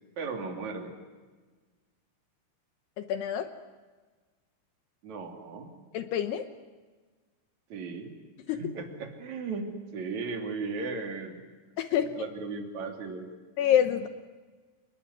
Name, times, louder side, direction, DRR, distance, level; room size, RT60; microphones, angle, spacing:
voice 1, 0.2-0.9 5.0-5.7 7.7-8.1 8.5-11.4 11.9-13.3, right 4 dB, 40° right, 4 dB, 3.6 m, -36 dB
voice 2, 3.1-3.5 5.9-6.5 8.5-8.6 11.8-12.1 13.6-14.1, left 10 dB, 75° left, 9 dB, 2.4 m, -26 dB
28.5 x 21.0 x 9.7 m, 1.4 s
omnidirectional pair, 6.0 m